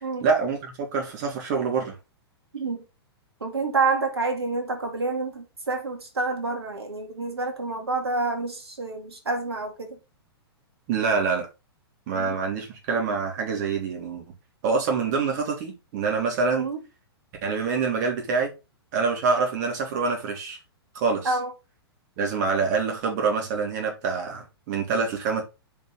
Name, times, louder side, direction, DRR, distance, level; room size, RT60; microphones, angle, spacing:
voice 1, 0.2-2.0 10.9-11.5 12.1-14.2 14.6-16.7 17.4-18.5 18.9-20.6 20.9-21.3 22.2-25.4, right 5 dB, 40° right, 3.6 m, -26 dB
voice 2, 2.5-2.8 3.4-10.0 12.1-12.4 16.5-16.8 21.2-21.5, right 3 dB, 70° right, 2.7 m, -28 dB
7.2 x 5.6 x 4.0 m
figure-of-eight pair, 110°, 14 cm